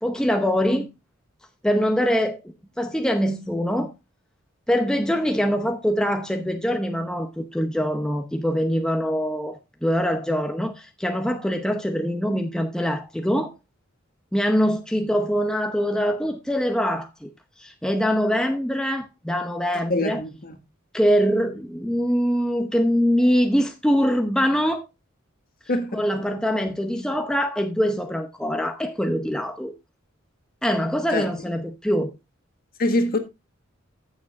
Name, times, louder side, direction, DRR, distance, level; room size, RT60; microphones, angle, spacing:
voice 1, 0.0-0.9 1.6-2.4 2.8-3.9 4.7-13.5 14.3-17.3 17.6-20.2 20.9-24.8 25.9-29.7 30.6-32.1, equal, 5° left, 0.7 m, -23 dB
voice 2, 19.9-20.6 25.7-26.3 31.1-31.3 32.8-33.2, left 1 dB, 45° left, 1.6 m, -24 dB
14.5 x 7.2 x 2.4 m
head